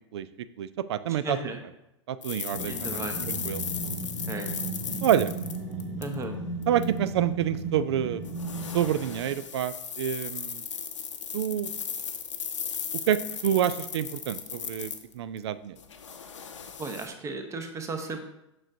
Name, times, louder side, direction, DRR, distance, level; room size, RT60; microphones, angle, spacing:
voice 1, 0.6-1.4 2.1-3.6 5.0-5.3 6.7-8.2 8.7-10.6 11.3-11.7 13.1-15.8, right 10 dB, 60° right, 15 dB, 0.4 m, -28 dB
voice 2, 1.1-1.6 2.7-3.2 4.3-4.5 6.0-6.3 16.8-18.2, right 3 dB, 20° right, 6 dB, 0.9 m, -35 dB
sound 1, 2.2-6.2 6.6-6.8 8.3-15.4 15.8-17.1, left 7 dB, 75° left, 0.7 m, -36 dB
sound 2, 2.5-9.3, right 2 dB, 75° right, 1.4 m, -35 dB
7.4 x 6.1 x 2.7 m, 0.87 s
figure-of-eight pair, 95°, 16 cm